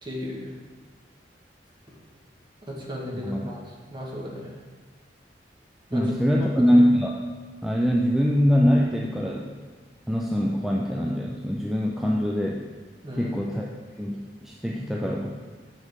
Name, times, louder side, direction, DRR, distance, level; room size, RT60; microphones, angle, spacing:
voice 1, 0.0-0.5 2.7-3.6 3.9-4.5 5.9-6.1 6.6-6.7 13.0-13.4, left 1 dB, 25° right, -3 dB, 1.4 m, -35 dB
voice 2, 5.9-7.1 7.6-9.5 10.1-12.6 13.1-13.7 14.0-15.3, equal, ahead, -3 dB, 0.4 m, -23 dB
6.5 x 6.5 x 3.6 m, 1.4 s
head